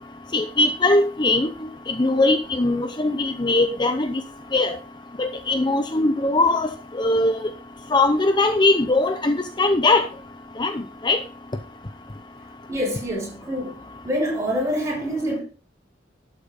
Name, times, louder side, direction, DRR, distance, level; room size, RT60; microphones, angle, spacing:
voice 1, 0.3-1.5 1.9-4.2 4.5-4.8 5.2-7.4 7.9-10.1 10.6-11.2, left 2 dB, 25° left, 0.7 m, -20 dB
voice 2, 12.7-13.7 14.0-15.4, equal, 15° right, 7.0 m, -26 dB
12.0 x 8.4 x 4.1 m
head